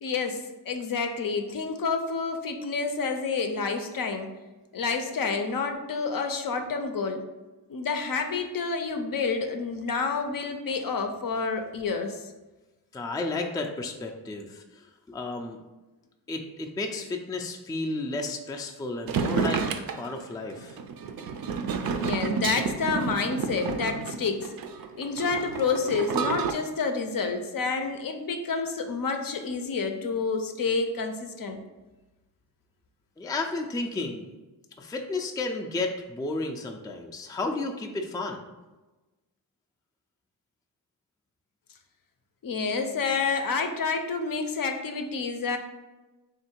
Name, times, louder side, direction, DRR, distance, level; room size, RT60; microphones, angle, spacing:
voice 1, 0.0-4.3 4.7-7.3 7.7-12.3 22.0-24.5 25.0-31.6 42.4-45.6, left 4 dB, 55° left, 6 dB, 0.6 m, -29 dB
voice 2, 12.9-14.6 15.1-15.6 16.3-20.7 33.2-34.3 34.8-38.4, left 2 dB, 10° left, 3 dB, 0.3 m, -32 dB
sound 1, 19.1-26.5, right 6 dB, 55° right, 0.5 m, -30 dB
3.6 x 2.5 x 4.4 m, 1.1 s
cardioid pair, 75°, 43 cm